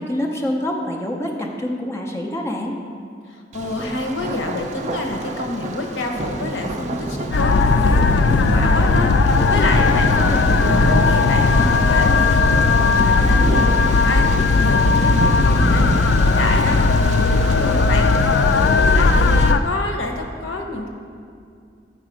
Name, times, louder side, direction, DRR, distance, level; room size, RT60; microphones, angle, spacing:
voice 1, 0.0-2.8, left 1 dB, 15° left, 0 dB, 0.6 m, -26 dB
voice 2, 3.3-15.9 16.2-18.1 18.4-19.3 19.6-20.9, left 2 dB, 90° left, 3 dB, 0.9 m, -28 dB
Thunder, 3.5-19.5, right 2 dB, 40° right, 0.4 m, -27 dB
sound 1, 7.3-19.6, left 4 dB, 65° left, 0.3 m, -16 dB
8.9 x 4.2 x 5.0 m, 2.3 s
head